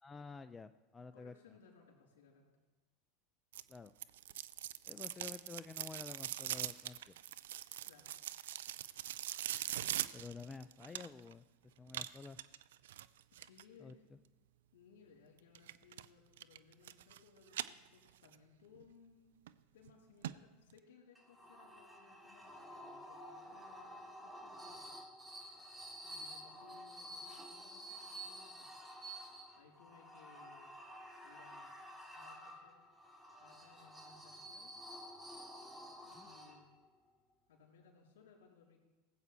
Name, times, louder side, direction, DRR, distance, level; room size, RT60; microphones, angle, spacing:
voice 1, 0.0-1.6 3.7-3.9 4.8-7.1 10.1-11.4 11.8-12.4 13.8-14.2 36.2-36.3, left 4 dB, 20° left, 12 dB, 0.4 m, -50 dB
voice 2, 1.1-2.4 7.8-8.1 13.3-14.1 14.7-19.4 19.7-25.0 26.0-28.7 29.6-30.8 31.2-31.8 32.1-32.8 33.4-34.7 36.0-36.7 37.5-38.8, left 5 dB, 70° left, 0 dB, 3.8 m, -64 dB
sound 1, 3.5-11.3 11.9-13.6 15.6-16.1 16.4-17.2 17.5-18.4 18.8-18.9 19.5-19.6 19.9-20.0 20.2-20.3 20.7-20.8, right 12 dB, 75° right, 0.4 m, -42 dB
sound 2, 21.1-36.9, equal, 5° right, 2.3 m, -51 dB
19.0 x 8.2 x 4.3 m, 1.1 s
hypercardioid pair, 85°, 0 cm